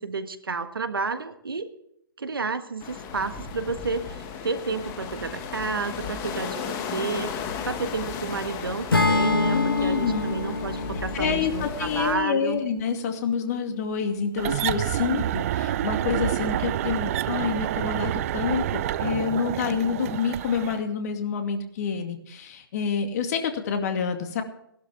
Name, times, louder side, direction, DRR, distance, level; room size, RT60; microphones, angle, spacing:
voice 1, 0.0-1.7 2.2-6.6 6.9-12.6, right 4 dB, 80° right, 10 dB, 1.5 m, -31 dB
sound 1, 2.8-12.1, left 6 dB, 25° left, 1.8 m, -35 dB
Acoustic guitar / Strum, 8.9-13.1, left 3 dB, 80° left, 1.7 m, -26 dB
voice 2, 9.5-10.3 11.1-24.4, left 6 dB, 45° left, 6 dB, 2.3 m, -28 dB
sound 2, 14.4-20.8, right 12 dB, 40° right, 0.5 m, -28 dB
18.0 x 12.0 x 3.5 m, 0.75 s
figure-of-eight pair, 130°, 12 cm